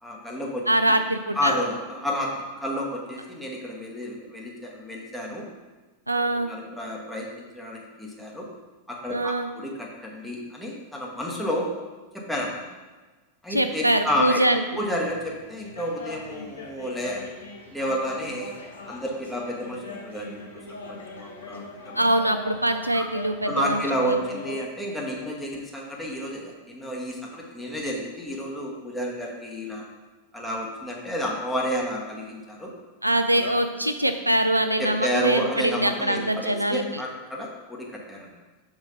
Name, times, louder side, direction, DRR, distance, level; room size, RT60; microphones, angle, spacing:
voice 1, 0.0-0.9 1.3-5.5 6.3-8.5 8.9-11.7 12.1-12.6 13.4-14.4 14.8-17.2 17.7-18.5 18.9-22.0 22.9-23.1 23.4-29.8 30.3-32.7 33.3-33.5 34.8-38.3, equal, ahead, -3 dB, 1.2 m, -30 dB
voice 2, 0.7-1.6 6.1-6.5 9.1-9.5 13.5-14.6 22.0-24.2 33.0-36.8, right 1 dB, 85° right, 8 dB, 0.3 m, -23 dB
sound 1, 14.9-24.7, left 3 dB, 70° left, 0.9 m, -41 dB
6.5 x 3.1 x 5.1 m, 1.3 s
figure-of-eight pair, 90°, 0 cm